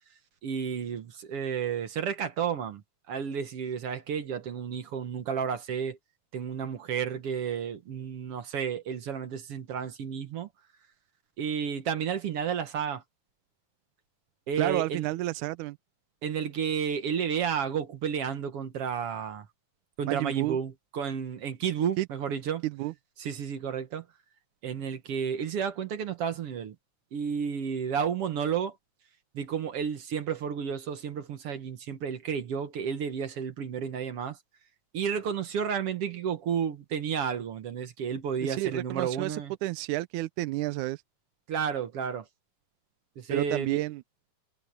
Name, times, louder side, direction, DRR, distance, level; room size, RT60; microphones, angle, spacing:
voice 1, 0.4-2.8 3.1-6.0 6.3-10.5 11.4-13.0 14.5-15.1 16.2-19.5 20.0-22.6 23.2-24.0 24.6-26.8 27.1-28.8 29.3-34.4 34.9-39.5 41.5-42.3 43.2-43.8, right 7 dB, 55° right, 1.8 m, -32 dB
voice 2, 14.6-15.8 20.1-20.6 22.0-22.1 22.6-22.9 38.4-41.0 43.3-44.0, right 18 dB, 80° right, 1.9 m, -30 dB
omnidirectional pair, 3.8 m